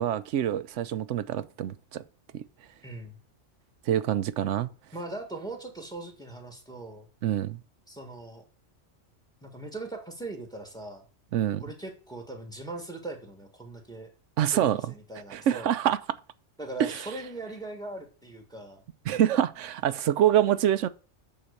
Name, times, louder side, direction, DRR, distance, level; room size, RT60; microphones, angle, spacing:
voice 1, 0.0-2.0 2.3-2.4 3.9-4.7 7.2-7.6 11.3-11.6 14.4-14.9 15.3-16.0 16.8-17.0 19.1-20.9, right 11 dB, 85° right, 0.9 m, -26 dB
voice 2, 2.8-3.2 4.9-7.1 7.9-8.4 9.4-11.0 11.6-14.1 14.5-15.7 16.6-18.8, right 2 dB, 5° left, 1.5 m, -40 dB
8.8 x 4.0 x 6.5 m
omnidirectional pair, 1.2 m